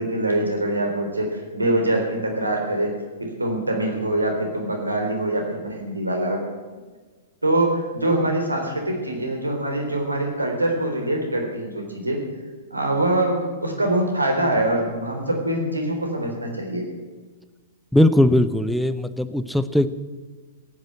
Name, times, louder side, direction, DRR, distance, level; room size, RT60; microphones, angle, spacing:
voice 1, 0.0-2.9 3.2-6.4 7.4-12.2 12.7-16.8, right 1 dB, 85° right, 2 dB, 3.7 m, -24 dB
voice 2, 17.9-19.9, left 1 dB, ahead, 13 dB, 0.8 m, -19 dB
17.5 x 9.5 x 7.9 m, 1.4 s
figure-of-eight pair, 105°, 0 cm